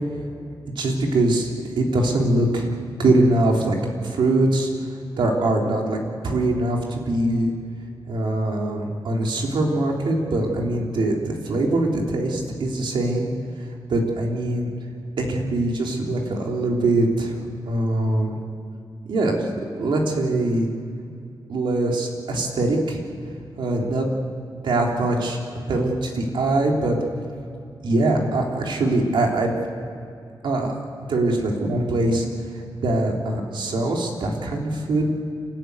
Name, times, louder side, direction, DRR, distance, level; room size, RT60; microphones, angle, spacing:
voice 1, 0.8-1.5 1.8-2.7 3.0-3.8 4.0-4.7 5.2-6.0 6.2-7.5 8.1-13.3 13.9-14.7 15.2-17.4 17.7-18.4 19.1-19.5 19.8-20.7 21.5-23.0 23.6-24.1 24.6-25.4 25.7-27.0 27.8-29.5 30.4-30.8 31.1-32.3 32.8-35.0, right 2 dB, 80° right, 0 dB, 3.4 m, -22 dB
28.5 x 13.5 x 9.5 m, 2.4 s
wide cardioid pair, 115°, 8 cm